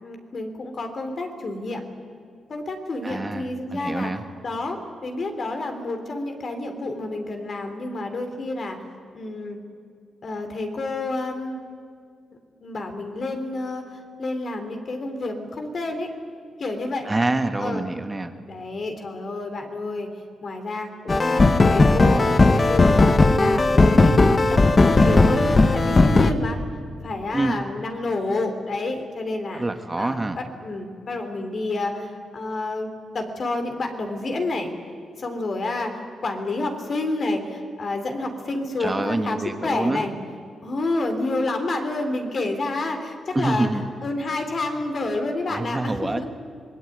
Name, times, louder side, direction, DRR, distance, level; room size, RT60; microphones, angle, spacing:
voice 1, 0.0-1.8 2.5-4.1 4.4-8.8 9.1-9.6 10.2-11.6 12.6-13.8 14.2-16.1 16.6-17.1 17.6-17.8 18.5-20.1 20.4-23.0 23.4-26.6 27.0-29.6 30.0-34.7 35.2-40.1 40.6-43.7 44.0-46.2, left 2 dB, 50° left, 5 dB, 3.8 m, -29 dB
voice 2, 3.0-4.2 17.0-18.3 27.3-27.6 29.5-30.4 38.8-40.1 43.3-43.9 45.4-46.2, right 2 dB, 20° right, 7 dB, 1.5 m, -26 dB
sound 1, 21.1-26.3, left 3 dB, 30° left, 1.4 m, -16 dB
26.0 x 20.5 x 9.5 m, 2.3 s
cardioid pair, 90°, 0 cm